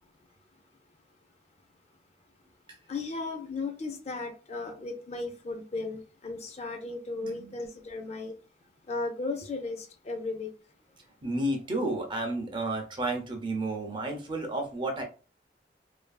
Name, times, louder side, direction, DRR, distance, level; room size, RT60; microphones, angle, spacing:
voice 1, 2.9-8.3 8.9-10.5, left 3 dB, 40° left, 5 dB, 0.5 m, -35 dB
voice 2, 7.2-7.5 11.2-15.0, right 2 dB, 25° right, 3 dB, 0.5 m, -31 dB
2.7 x 2.5 x 2.2 m, 0.35 s
head